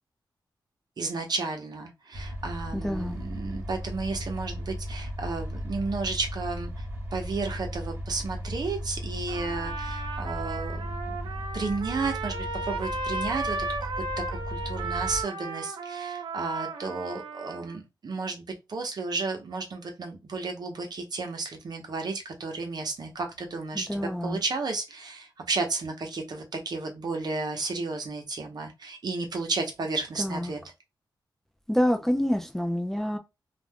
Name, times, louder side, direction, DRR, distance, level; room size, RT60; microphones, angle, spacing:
voice 1, 1.0-6.9 7.1-13.9 14.3-18.4 18.7-30.6, right 3 dB, 55° right, 0.8 m, -33 dB
sound 1, 2.1-15.2, equal, 25° right, 0.9 m, -36 dB
voice 2, 2.7-3.2 23.7-24.4 30.2-30.5 31.7-33.2, equal, 5° left, 0.4 m, -27 dB
Trumpet, 9.3-17.8, right 3 dB, 85° right, 0.5 m, -35 dB
2.4 x 2.2 x 3.5 m
wide cardioid pair, 105°, 8 cm